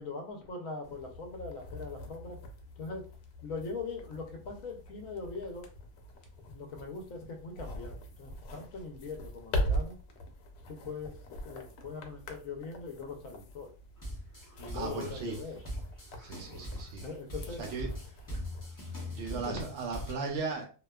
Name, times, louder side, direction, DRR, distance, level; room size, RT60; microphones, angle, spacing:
voice 1, 0.0-2.4 2.8-3.0 3.4-5.7 6.5-10.0 10.7-11.2 11.4-13.7 14.6-15.6 16.5-16.7 17.0-17.6 19.3-19.6, left 4 dB, 70° left, 3 dB, 0.9 m, -41 dB
sound 1, 0.8-19.9, equal, 90° left, 1.1 m, -42 dB
sound 2, 14.0-20.1, left 1 dB, 30° left, 0.3 m, -42 dB
voice 2, 14.7-15.4 16.2-17.1 17.6-17.9 19.0-20.7, right 4 dB, 65° right, 2 dB, 0.7 m, -36 dB
2.7 x 2.2 x 2.2 m, 0.35 s
omnidirectional pair, 1.6 m